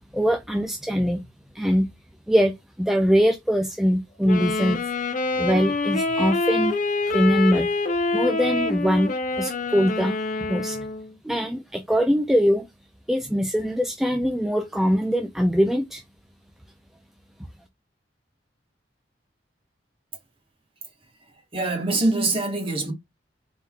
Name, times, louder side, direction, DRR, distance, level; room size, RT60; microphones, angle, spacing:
voice 1, 0.1-1.2 1.5-1.9 2.3-4.8 5.4-6.8 7.1-7.7 8.1-10.2 10.5-10.9 11.2-12.7 13.1-16.0, equal, ahead, 0.4 m, -22 dB
Wind instrument woodwind instrument, 4.2-11.1, left 3 dB, 45° left, 0.7 m, -26 dB
voice 2, 21.5-22.9, right 2 dB, 30° right, 1.4 m, -24 dB
4.1 x 3.7 x 2.4 m
head